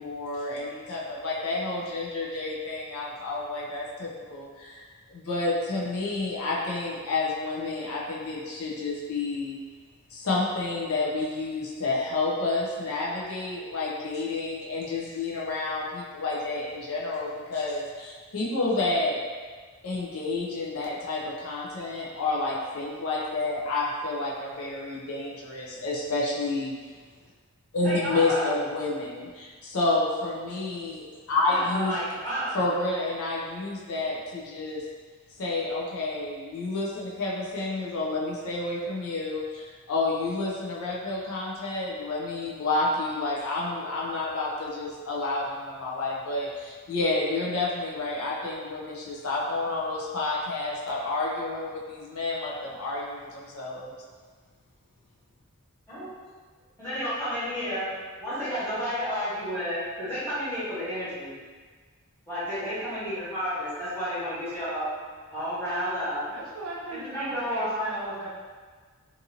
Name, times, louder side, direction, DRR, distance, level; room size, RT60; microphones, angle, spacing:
voice 1, 0.0-9.6 10.1-19.2 19.8-26.7 27.7-32.0 32.5-34.8 35.4-53.9, left 2 dB, 75° left, -4 dB, 0.6 m, -30 dB
voice 2, 27.8-28.6 31.4-32.6 55.9-56.3 56.8-57.8 58.2-61.3 62.3-64.9 65.3-66.2 66.9-67.9, equal, 10° left, -13 dB, 1.3 m, -31 dB
voice 3, 66.3-68.3, right 2 dB, 65° right, -3 dB, 0.5 m, -37 dB
2.6 x 2.6 x 2.7 m, 1.5 s
head